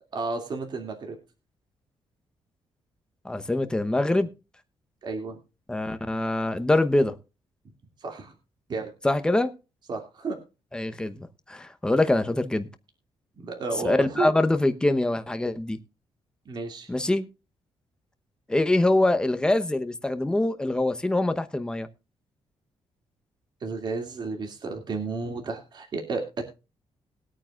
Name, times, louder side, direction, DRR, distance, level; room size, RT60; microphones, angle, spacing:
voice 1, 0.1-1.2 5.0-5.4 8.0-8.3 8.7-8.9 9.9-10.4 13.4-14.3 16.5-16.9 23.6-26.4, right 3 dB, 45° right, 2.5 m, -32 dB
voice 2, 3.2-4.3 5.7-7.1 9.0-9.5 10.7-12.7 13.8-15.8 16.9-17.3 18.5-21.9, left 2 dB, 10° left, 0.9 m, -24 dB
20.5 x 9.0 x 2.4 m
cardioid pair, 140°, 10 cm